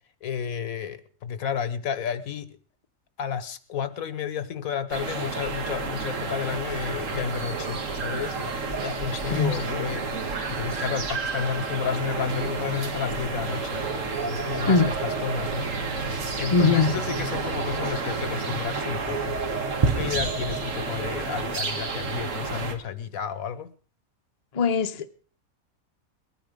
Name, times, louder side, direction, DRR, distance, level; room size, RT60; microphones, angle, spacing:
voice 1, 0.2-2.6 3.2-13.8 14.2-15.7 16.1-19.4 19.8-23.7, left 8 dB, 80° left, 1.3 m, -32 dB
sound 1, 4.9-22.8, right 4 dB, 65° right, 1.8 m, -30 dB
sound 2, 5.7-21.2, right 4 dB, 30° right, 0.7 m, -38 dB
voice 2, 9.3-9.6 14.7-14.9 16.5-16.9 24.5-25.1, left 4 dB, 35° left, 0.7 m, -21 dB
21.0 x 9.3 x 5.1 m
omnidirectional pair, 1.5 m